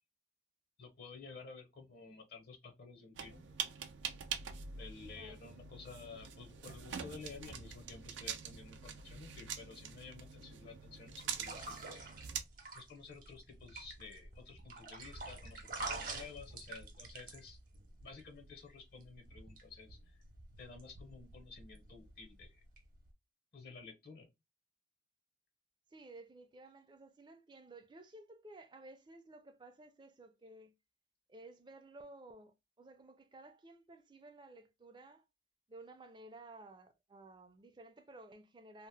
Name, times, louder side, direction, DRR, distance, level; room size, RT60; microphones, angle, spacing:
voice 1, 0.8-3.4 4.8-12.1 12.7-17.6 18.0-20.2 20.6-22.6 23.5-24.3, left 4 dB, 55° left, 0.6 m, -52 dB
sound 1, 3.1-12.4, right 7 dB, 85° right, 0.5 m, -45 dB
voice 2, 5.2-5.5 25.9-30.7 31.3-35.2 35.7-38.9, right 2 dB, 25° right, 0.4 m, -55 dB
sound 2, 11.1-23.1, right 3 dB, 50° right, 0.8 m, -48 dB
2.8 x 2.0 x 3.2 m
head